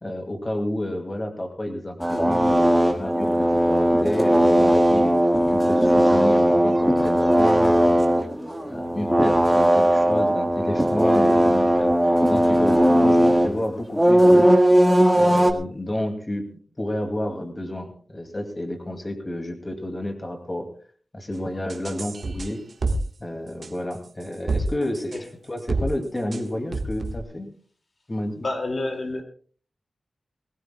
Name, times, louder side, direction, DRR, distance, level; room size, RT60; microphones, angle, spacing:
voice 1, 0.0-5.1 5.5-8.2 8.7-14.5 15.1-16.4 16.8-20.7 21.1-22.6 23.2-27.5 28.1-28.4, left 1 dB, 25° left, 4 dB, 2.3 m, -30 dB
sound 1, 2.0-13.5 13.9-15.5, equal, 5° right, 1.7 m, -18 dB
sound 2, 21.7-23.0 23.6-24.7 24.9-25.2 25.6-25.9 26.3-26.4 26.7-27.2, right 3 dB, 60° right, 1.5 m, -27 dB
voice 2, 28.4-29.2, left 2 dB, 45° left, 4 dB, 2.4 m, -28 dB
21.0 x 18.0 x 2.3 m, 0.42 s
wide cardioid pair, 130°, 0 cm